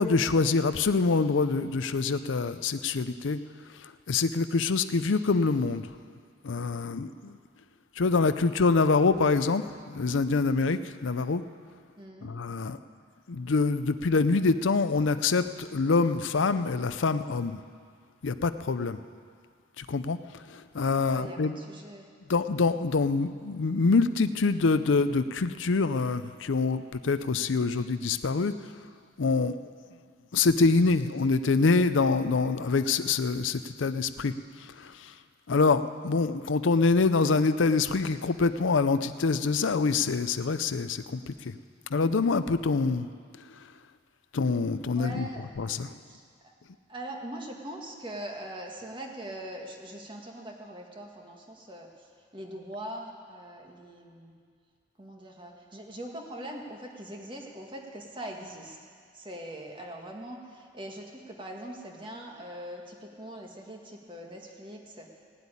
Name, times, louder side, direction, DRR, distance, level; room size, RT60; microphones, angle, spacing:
voice 1, 0.0-3.4 3.8-5.9 6.4-7.4 8.0-11.4 12.2-12.8 13.3-17.6 18.2-19.0 19.8-20.2 20.5-21.5 22.3-28.5 29.2-29.6 30.3-34.3 34.6-35.1 35.5-41.6 41.9-43.1 44.3-45.3 45.6-45.9, left 4 dB, 75° left, 12 dB, 0.5 m, -25 dB
voice 2, 12.0-12.3 21.0-22.0 44.9-45.5 46.1-46.2 46.9-51.9 52.3-54.4 55.0-58.8 59.1-65.1, right 1 dB, 25° right, 1 dB, 1.7 m, -42 dB
17.0 x 8.2 x 9.9 m, 2.1 s
head